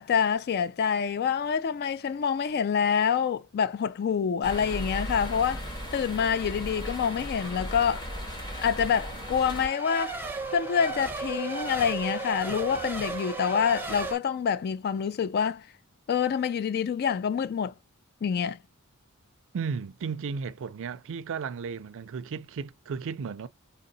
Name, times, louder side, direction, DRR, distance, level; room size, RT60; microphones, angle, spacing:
voice 1, 0.0-5.6 5.9-8.1 8.6-10.2 10.5-15.7 16.1-17.7 18.2-18.6, left 7 dB, 45° left, 0.3 m, -27 dB
sound 1, 4.4-9.7, equal, 20° left, 1.4 m, -36 dB
Race car auto racing / Accelerating revving vroom / Mechanisms, 6.3-14.2, right 3 dB, 10° right, 0.7 m, -37 dB
voice 2, 19.5-23.5, right 5 dB, 60° right, 0.4 m, -34 dB
3.8 x 2.0 x 3.8 m
head